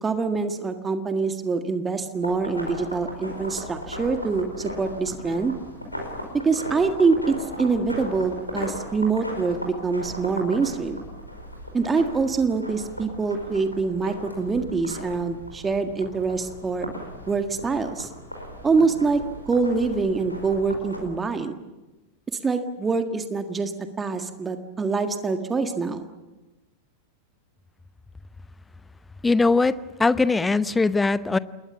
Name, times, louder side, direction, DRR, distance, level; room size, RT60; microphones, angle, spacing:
voice 1, 0.0-5.5 6.4-11.0 11.7-16.9 17.3-18.1 18.6-21.6 22.4-23.7 24.0-26.1, right 4 dB, 15° right, 7 dB, 1.8 m, -25 dB
sound 1, 2.2-21.0, equal, 90° left, 5.0 m, -37 dB
voice 2, 29.2-31.4, left 3 dB, 10° left, 17 dB, 0.8 m, -21 dB
28.5 x 21.5 x 7.2 m, 1.1 s
figure-of-eight pair, 90°, 0 cm